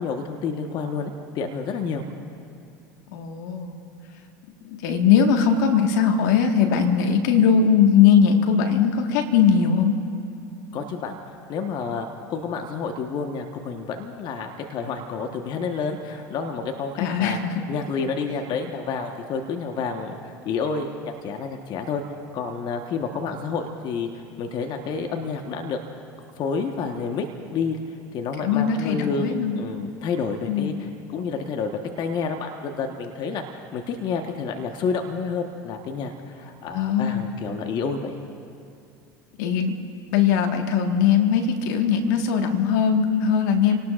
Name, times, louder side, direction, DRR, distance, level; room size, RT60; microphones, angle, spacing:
voice 1, 0.0-2.0 10.7-11.2 11.5-22.0 22.3-25.8 26.4-31.7 32.0-38.2, left 5 dB, 50° left, 4 dB, 1.3 m, -29 dB
voice 2, 3.1-3.8 4.7-10.0 17.0-17.4 28.4-29.6 30.5-30.8 36.7-37.3 39.4-39.7 40.1-43.8, left 7 dB, 70° left, 4 dB, 1.6 m, -20 dB
29.0 x 18.5 x 2.5 m, 2.4 s
hypercardioid pair, 80°, 10 cm